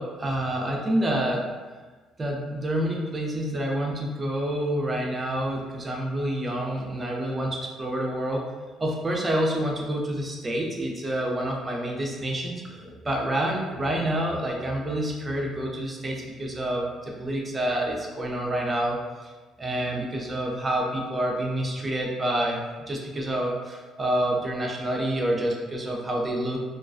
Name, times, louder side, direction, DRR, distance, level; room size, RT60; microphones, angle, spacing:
voice 1, 0.0-1.5 2.2-8.4 8.8-19.3 19.6-22.6 22.9-26.6, right 1 dB, 25° right, -1 dB, 0.5 m, -28 dB
2.3 x 2.2 x 2.5 m, 1.3 s
cardioid pair, 90°, 0 cm